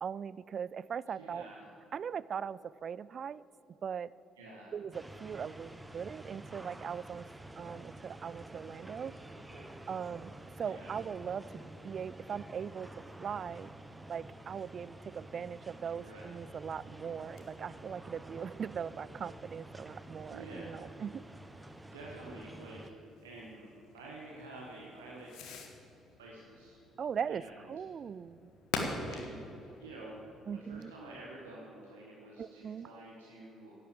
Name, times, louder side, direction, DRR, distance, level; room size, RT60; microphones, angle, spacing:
voice 1, 0.0-1.5 1.9-3.4 3.8-4.1 4.7-7.3 7.6-9.1 9.9-13.7 14.1-21.3 27.0-28.5 30.5-30.9 32.4-32.9, right 7 dB, 50° right, 20 dB, 0.3 m, -40 dB
voice 2, 1.2-1.7 4.4-4.7 9.5-9.7 10.7-10.9 16.0-16.2 20.3-20.8 21.7-23.7 23.9-25.3 26.2-26.8 27.3-27.5 29.1-29.4 29.8-30.2 30.5-33.7, right 2 dB, 85° right, -4 dB, 1.5 m, -49 dB
sound 1, 4.9-22.9, right 1 dB, 15° right, 0.9 m, -49 dB
Fireworks, 16.6-31.2, left 3 dB, 70° left, 1.6 m, -47 dB
11.0 x 8.8 x 9.0 m, 3.0 s
hypercardioid pair, 50°, 0 cm